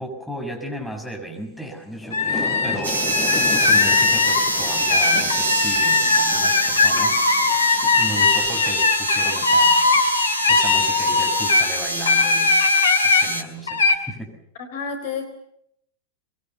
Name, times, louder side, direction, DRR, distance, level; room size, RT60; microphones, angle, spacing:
voice 1, 0.0-3.2 3.6-7.2 8.0-9.8 10.5-12.6 13.0-14.3, right 1 dB, ahead, 1 dB, 6.5 m, -34 dB
sound 1, 1.5-1.6 1.8-8.7 10.0-10.1 10.5-10.6, left 4 dB, 25° left, 4.9 m, -35 dB
sound 2, 2.1-11.7 12.1-13.3 13.7-13.9, left 3 dB, 70° left, 2.3 m, -19 dB
sound 3, 2.8-13.4, right 1 dB, 80° right, 2.4 m, -26 dB
voice 2, 14.6-15.3, left 5 dB, 50° left, 6 dB, 4.1 m, -29 dB
24.0 x 21.5 x 7.0 m, 0.73 s
figure-of-eight pair, 90°, 0 cm